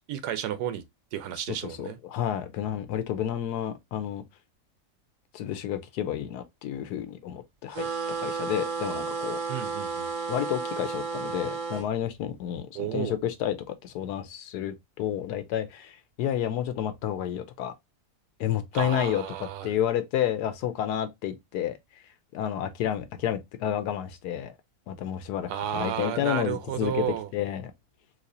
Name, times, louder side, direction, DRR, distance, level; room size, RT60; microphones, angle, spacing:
voice 1, 0.1-0.8 1.1-2.0 9.5-10.1 12.7-13.2 18.7-19.7 25.5-27.3, right 10 dB, 90° right, 1.2 m, -32 dB
voice 2, 1.5-4.2 5.3-7.9 8.2-9.4 10.3-17.7 18.4-22.0 22.3-24.6 24.9-27.7, left 10 dB, 85° left, 1.1 m, -30 dB
sound 1, 7.7-11.9, right 4 dB, 60° right, 1.0 m, -32 dB
4.1 x 2.8 x 2.6 m
omnidirectional pair, 1.6 m